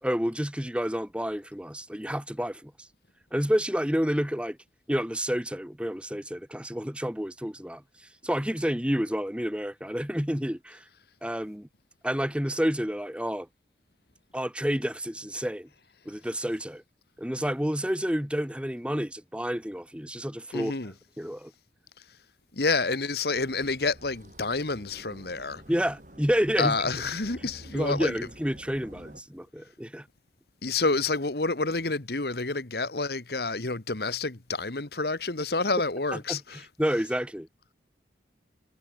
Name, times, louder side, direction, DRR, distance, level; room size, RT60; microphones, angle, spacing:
voice 1, 0.0-2.9 3.3-4.6 4.9-7.8 8.2-10.8 11.2-11.7 12.0-13.5 14.3-15.7 16.1-16.8 17.2-20.7 21.2-21.5 25.7-26.8 27.7-30.1 36.1-37.5, equal, 5° right, 1.9 m, -29 dB
voice 2, 20.5-20.9 22.5-25.6 26.6-28.1 30.6-36.6, left 3 dB, 60° left, 1.5 m, -29 dB
sound 1, 23.4-29.2, right 1 dB, 45° right, 5.0 m, -49 dB
head